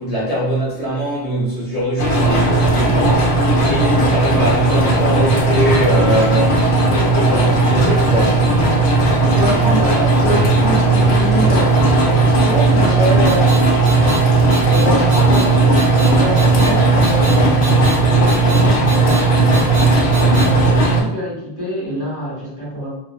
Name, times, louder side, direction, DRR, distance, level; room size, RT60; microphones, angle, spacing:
voice 1, 0.0-8.6, equal, 40° left, -9 dB, 0.7 m, -22 dB
sound 1, 2.0-21.0, right 2 dB, 75° left, 0.8 m, -15 dB
voice 2, 9.2-13.8 14.6-22.9, equal, 15° right, -9 dB, 1.3 m, -25 dB
sound 2, 13.3-13.6 13.9-14.2 14.5-14.8 15.1-15.4 15.8-16.1 16.4-16.7 17.0-17.3 17.6-17.9 18.3-18.6 18.9-19.2 19.5-19.9 20.1-20.5, right 4 dB, 80° right, 1.3 m, -29 dB
3.0 x 2.1 x 2.3 m, 0.83 s
omnidirectional pair, 1.1 m